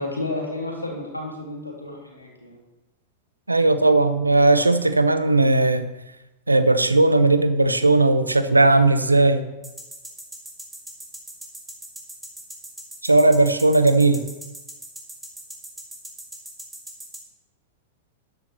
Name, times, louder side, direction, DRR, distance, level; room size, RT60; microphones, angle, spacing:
voice 1, 0.0-2.6, left 2 dB, 85° left, -1 dB, 2.5 m, -31 dB
voice 2, 3.5-5.8 6.5-9.4 13.0-14.2, right 2 dB, 85° right, 12 dB, 0.7 m, -17 dB
sound 1, 9.6-17.2, right 1 dB, 10° right, 2.8 m, -39 dB
13.0 x 10.5 x 3.1 m, 1.1 s
figure-of-eight pair, 90°, 0 cm